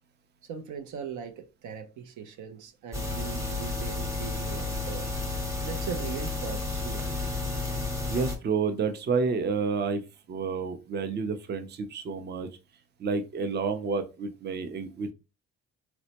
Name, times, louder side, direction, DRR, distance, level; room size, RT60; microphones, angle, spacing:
voice 1, 0.4-5.1 5.6-7.1, right 7 dB, 80° right, 0.6 m, -40 dB
sound 1, 2.9-8.4, left 3 dB, 10° right, 0.9 m, -32 dB
voice 2, 8.1-10.0 10.3-12.5 13.0-15.1, right 5 dB, 35° right, 0.5 m, -29 dB
4.2 x 2.0 x 2.8 m
cardioid pair, 90°, 30 cm